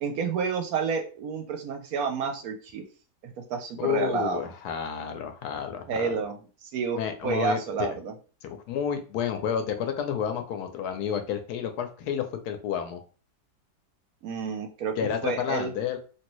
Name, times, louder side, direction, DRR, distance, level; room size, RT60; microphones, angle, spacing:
voice 1, 0.0-2.8 3.5-4.4 5.9-8.1 14.2-15.7, right 6 dB, 70° right, 4 dB, 0.9 m, -30 dB
voice 2, 3.8-6.2 7.0-7.9 8.4-13.0 15.0-16.0, left 8 dB, 75° left, 7 dB, 1.1 m, -30 dB
3.1 x 2.6 x 3.0 m, 0.37 s
omnidirectional pair, 1.8 m